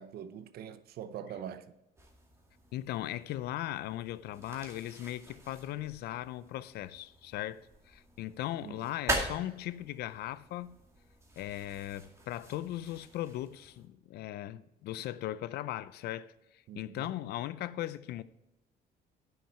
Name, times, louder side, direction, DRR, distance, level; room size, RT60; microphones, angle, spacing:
voice 1, 0.0-1.7 8.6-8.9 16.7-17.1, right 9 dB, 65° right, 0.7 m, -44 dB
sound 1, 2.0-13.9, right 1 dB, 15° right, 2.2 m, -43 dB
voice 2, 2.7-10.8 11.4-18.2, left 14 dB, 70° left, 0.5 m, -38 dB
9.6 x 6.4 x 4.4 m
cardioid pair, 110°, 17 cm